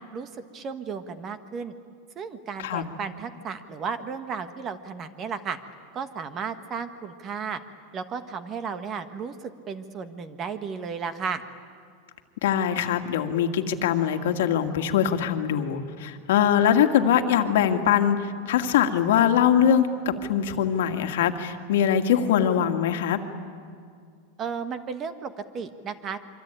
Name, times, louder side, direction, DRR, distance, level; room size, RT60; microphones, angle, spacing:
voice 1, 0.1-1.7 2.1-5.6 5.9-7.6 7.9-9.3 9.7-11.4 24.4-26.2, right 6 dB, 25° right, 10 dB, 1.3 m, -34 dB
voice 2, 12.4-23.2, left 9 dB, 75° left, 5 dB, 2.0 m, -22 dB
25.5 x 24.5 x 9.1 m, 2.2 s
supercardioid pair, 160°, 0 cm